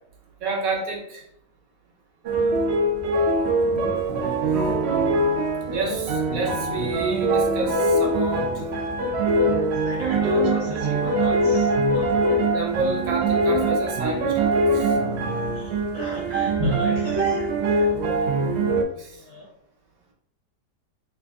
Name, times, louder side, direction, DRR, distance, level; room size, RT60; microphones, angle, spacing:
voice 1, 0.4-1.2 5.7-8.6 12.4-14.9 16.6-16.7 18.9-19.1, right 3 dB, 60° right, 0 dB, 1.2 m, -28 dB
sound 1, 2.2-18.8, right 2 dB, 85° right, 0.5 m, -23 dB
voice 2, 9.8-12.1 15.4-17.9 18.1-18.2 19.2-19.5, left 1 dB, 85° left, -4 dB, 0.4 m, -37 dB
3.2 x 2.5 x 3.4 m, 0.69 s
omnidirectional pair, 1.8 m